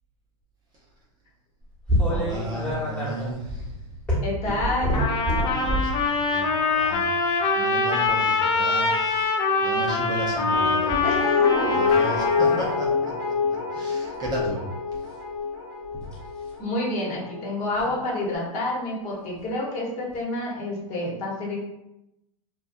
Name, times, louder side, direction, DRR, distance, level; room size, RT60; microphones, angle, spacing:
sound 1, 1.9-6.0 6.7-7.0 8.8-9.2 10.9-11.0 11.5-11.9 12.4-12.6 14.1-14.4 16.1-16.3 17.8-17.9 19.4-19.5 20.1-20.2, equal, 5° left, 1.1 m, -27 dB
voice 1, 2.0-3.9 5.6-11.1 11.6-14.7 14.9-15.1, equal, 20° right, -4 dB, 0.6 m, -34 dB
voice 2, 4.2-5.1 11.0-12.1 16.6-21.6, left 1 dB, 40° left, -4 dB, 1.0 m, -29 dB
Trumpet, 4.9-12.7, left 3 dB, 25° left, 0.5 m, -24 dB
Guitar, 10.5-17.5 17.9-18.0, left 5 dB, 70° left, 1.0 m, -26 dB
2.6 x 2.3 x 2.4 m, 0.89 s
hypercardioid pair, 110°, 19 cm